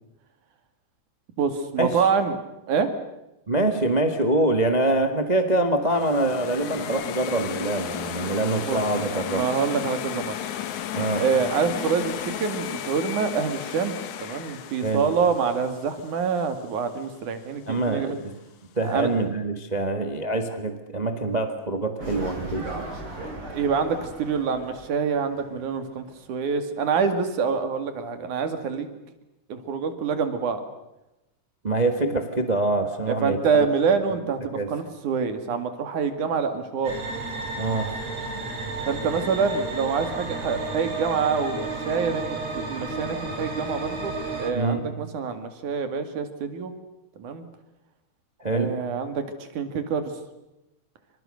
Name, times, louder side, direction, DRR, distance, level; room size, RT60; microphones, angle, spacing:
voice 1, 1.4-2.4 2.7-2.9 8.6-8.8 9.1-10.4 11.2-18.2 18.9-19.1 23.5-29.0 29.5-30.6 33.1-37.0 38.9-46.7 47.2-47.4 48.5-50.1, right 5 dB, 90° right, 8 dB, 3.8 m, -26 dB
voice 2, 3.5-9.4 10.9-11.2 14.8-15.1 17.6-18.3 18.7-22.7 31.6-33.7 34.5-34.7 37.6-37.9 44.5-44.8 48.4-48.9, right 2 dB, 20° right, 6 dB, 1.3 m, -25 dB
sound 1, 5.8-16.8, left 10 dB, 75° left, 2.8 m, -34 dB
sound 2, 22.0-25.9 26.2-26.3, right 2 dB, 45° right, 7.0 m, -37 dB
sound 3, 36.8-44.5, right 3 dB, 60° right, 4.7 m, -32 dB
28.0 x 26.0 x 6.5 m, 0.94 s
omnidirectional pair, 3.4 m